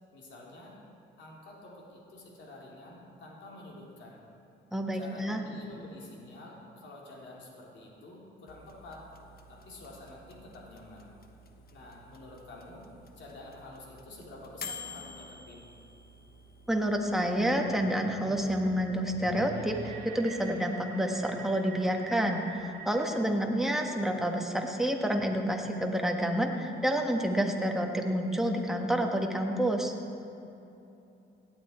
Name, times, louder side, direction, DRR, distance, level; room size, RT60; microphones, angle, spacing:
voice 1, 0.1-0.8 1.2-4.2 4.9-9.1 9.5-11.1 11.7-12.9 13.1-15.7, left 2 dB, 65° left, -3 dB, 3.3 m, -48 dB
voice 2, 4.7-5.4 16.7-29.9, equal, ahead, 2 dB, 1.5 m, -29 dB
sound 1, 8.5-17.5, left 5 dB, 50° left, 1.1 m, -49 dB
sound 2, 17.6-23.3, right 4 dB, 50° right, 2.2 m, -45 dB
17.5 x 9.7 x 4.5 m, 2.8 s
cardioid pair, 90°, 20 cm